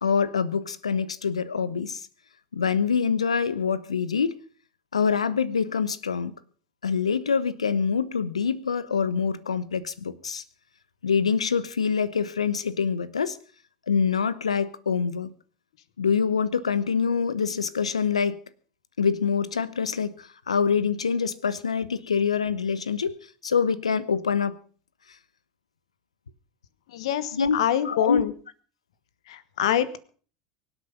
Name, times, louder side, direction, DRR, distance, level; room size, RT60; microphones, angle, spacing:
voice 1, 0.0-2.1 2.5-4.3 4.9-6.3 6.8-10.4 11.0-13.4 13.9-15.3 16.0-18.4 19.0-23.2 23.4-24.6 27.3-27.6 27.8-28.2, left 6 dB, 90° left, 17 dB, 0.9 m, -25 dB
voice 2, 26.9-28.3 29.3-30.0, left 10 dB, 70° left, 15 dB, 1.3 m, -25 dB
24.0 x 8.3 x 5.2 m, 0.42 s
hypercardioid pair, 80°, 3 cm